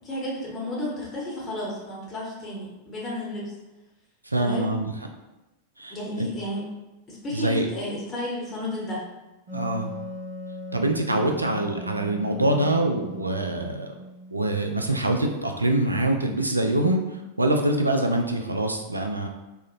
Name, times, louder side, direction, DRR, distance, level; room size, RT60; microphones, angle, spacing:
voice 1, 0.0-3.5 4.3-4.7 5.9-6.6 7.1-9.0, left 1 dB, 25° left, -5 dB, 0.8 m, -32 dB
voice 2, 4.3-4.9 5.8-6.3 7.3-7.7 9.5-9.9 10.7-13.9 14.3-19.3, right 1 dB, 85° right, 4 dB, 0.3 m, -25 dB
Wind instrument woodwind instrument, 9.5-14.9, left 1 dB, 55° right, 0.9 m, -38 dB
3.7 x 2.0 x 2.4 m, 1.0 s
figure-of-eight pair, 90°, 0 cm